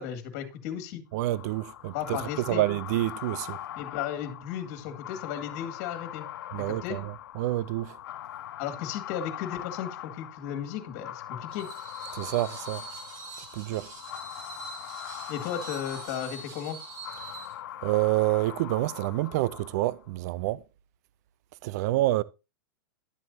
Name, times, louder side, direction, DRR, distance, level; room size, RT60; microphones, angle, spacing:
voice 1, 0.0-1.0 1.9-2.6 3.8-6.3 6.7-7.0 8.6-11.7 15.3-16.8, left 9 dB, 45° left, 2.1 m, -35 dB
voice 2, 1.1-2.2 2.5-3.6 6.5-8.0 12.1-12.8 13.5-13.9 17.8-20.6 21.6-22.2, right 17 dB, 50° right, 0.5 m, -28 dB
sound 1, 1.2-20.1, left 12 dB, 85° left, 0.6 m, -42 dB
Screech, 11.5-17.6, right 4 dB, 35° right, 2.5 m, -44 dB
11.5 x 7.8 x 2.7 m
supercardioid pair, 155°, 11 cm